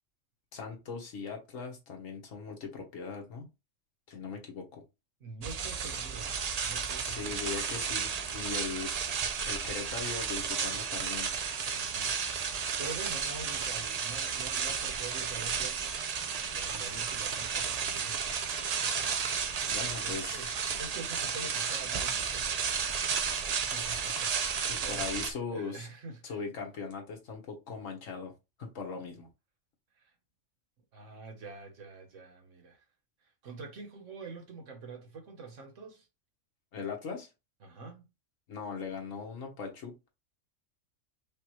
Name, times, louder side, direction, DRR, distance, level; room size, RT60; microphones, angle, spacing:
voice 1, 0.5-3.5 4.1-4.8 7.0-8.9 9.5-11.3 19.7-20.5 24.7-25.9 26.2-28.3 28.6-29.3 36.7-37.3 38.5-40.1, left 5 dB, 80° left, 1.6 m, -39 dB
voice 2, 5.2-7.4 11.7-12.2 12.8-19.2 19.5-23.3 23.6-25.0 25.5-26.4 30.0-30.1 30.9-32.8 33.4-36.1 37.6-38.1, right 4 dB, 75° right, 1.4 m, -46 dB
sound 1, 5.4-25.3, right 6 dB, 55° right, 0.4 m, -33 dB
5.3 x 2.4 x 3.0 m
omnidirectional pair, 1.3 m